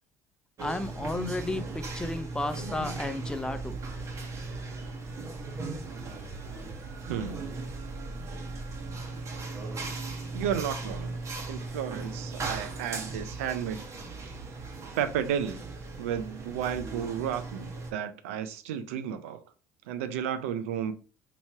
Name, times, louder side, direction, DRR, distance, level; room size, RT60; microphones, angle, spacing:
voice 1, 0.6-3.8, left 2 dB, 10° left, 0.6 m, -33 dB
sound 1, 0.6-17.9, right 3 dB, 45° right, 1.3 m, -38 dB
voice 2, 7.1-7.5 10.3-11.2 11.5-13.8 15.0-15.6 16.0-19.4 19.9-20.9, right 9 dB, 90° right, 0.4 m, -32 dB
2.9 x 2.8 x 4.5 m
supercardioid pair, 75°, 7 cm